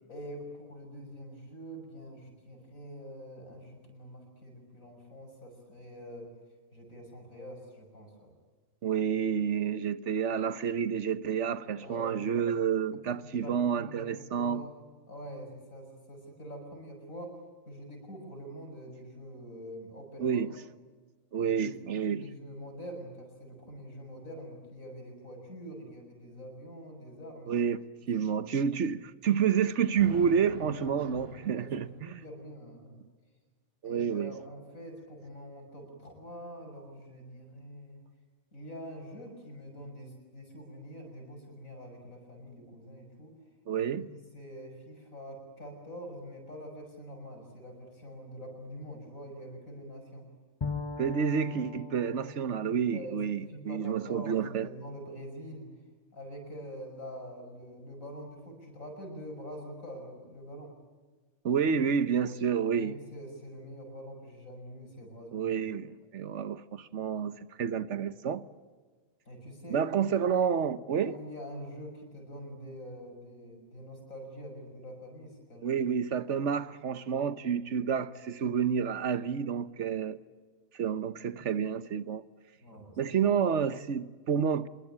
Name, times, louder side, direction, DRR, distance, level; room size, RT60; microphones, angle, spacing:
voice 1, 0.1-6.3 6.7-8.3 11.8-12.2 13.1-14.7 15.1-17.3 17.7-20.4 21.4-27.6 28.2-28.3 31.5-31.7 32.0-33.0 33.8-38.0 38.5-43.3 43.7-44.1 44.3-50.3 52.9-55.7 56.1-60.7 62.7-65.6 69.3-70.2 71.0-75.8 82.6-83.0, equal, 90° left, 6.6 m, -45 dB
voice 2, 8.8-14.6 20.2-20.5 21.3-22.2 27.5-27.8 28.1-32.2 33.8-34.3 43.7-44.1 51.0-54.7 61.4-62.9 65.3-68.4 69.7-71.2 75.6-80.2 80.7-82.2 83.0-84.7, right 7 dB, 60° right, 1.3 m, -29 dB
Thunder, 29.9-32.5, left 1 dB, 50° left, 4.6 m, -45 dB
Bowed string instrument, 50.6-54.3, left 4 dB, 25° left, 1.0 m, -41 dB
26.0 x 22.0 x 8.8 m
omnidirectional pair, 1.4 m